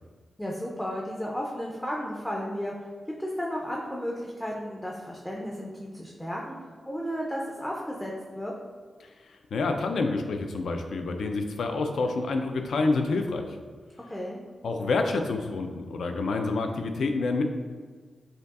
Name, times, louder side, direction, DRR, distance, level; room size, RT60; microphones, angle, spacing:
voice 1, 0.4-2.7 3.2-6.5 6.9-8.5 14.1-14.4, equal, 5° left, -3 dB, 0.3 m, -33 dB
voice 2, 9.5-13.5 14.6-17.4, left 3 dB, 85° left, 5 dB, 0.3 m, -28 dB
5.2 x 2.3 x 2.3 m, 1.5 s
wide cardioid pair, 165°, 0 cm